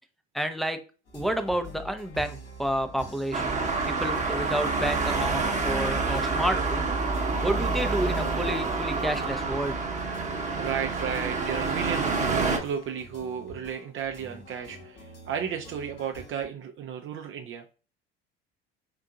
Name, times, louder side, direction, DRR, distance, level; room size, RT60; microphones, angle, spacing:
voice 1, 0.3-0.8 1.1-3.4 3.9-6.9 7.4-9.8, right 1 dB, ahead, 6 dB, 0.6 m, -30 dB
sound 1, 1.0-16.5, right 1 dB, 75° left, 1.8 m, -47 dB
Traffic noise roadway noise, 3.3-12.6, right 3 dB, 25° right, 1.0 m, -28 dB
voice 2, 10.2-17.6, right 8 dB, 40° right, 5 dB, 0.5 m, -34 dB
3.9 x 3.6 x 2.3 m, 0.34 s
hypercardioid pair, 65°, 31 cm